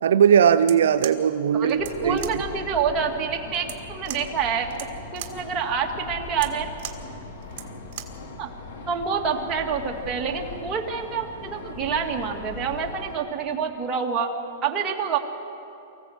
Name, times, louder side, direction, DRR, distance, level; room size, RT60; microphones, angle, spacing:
voice 1, 0.0-2.2, right 8 dB, 85° right, 9 dB, 0.6 m, -19 dB
sound 1, 0.5-8.3, right 12 dB, 50° right, 1.7 m, -41 dB
voice 2, 1.5-4.7 5.1-6.7 8.4-8.5 8.9-14.3 14.6-15.2, right 6 dB, 25° right, 1 dB, 2.2 m, -27 dB
sound 2, 1.8-13.1, left 3 dB, 75° left, 2.6 m, -39 dB
24.0 x 15.5 x 8.0 m, 2.8 s
hypercardioid pair, 140°, 0 cm